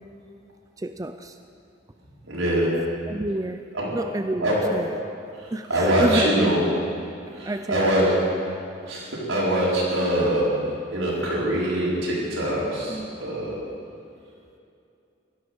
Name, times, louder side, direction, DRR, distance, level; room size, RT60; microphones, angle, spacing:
voice 1, 0.8-1.4 3.1-3.6 3.9-4.9 5.5-6.8 7.4-8.2 12.9-13.1, right 1 dB, 15° right, 8 dB, 0.4 m, -29 dB
voice 2, 2.2-2.7 3.7-3.9 4.4-4.6 5.4-6.6 7.3-8.2 8.8-10.6 10.9-13.5, right 1 dB, 85° right, -6 dB, 5.0 m, -23 dB
16.5 x 13.0 x 6.3 m, 2.6 s
head